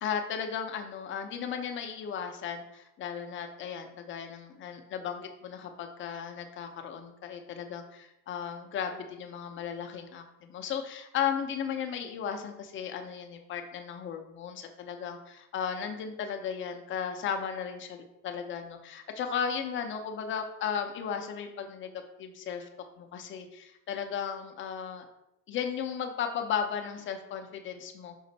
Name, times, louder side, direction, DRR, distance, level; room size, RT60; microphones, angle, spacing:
voice 1, 0.0-21.9 22.2-22.7 23.0-25.0 25.5-28.2, left 7 dB, 30° left, 5 dB, 0.5 m, -35 dB
5.2 x 2.4 x 4.0 m, 0.89 s
supercardioid pair, 120°, 42 cm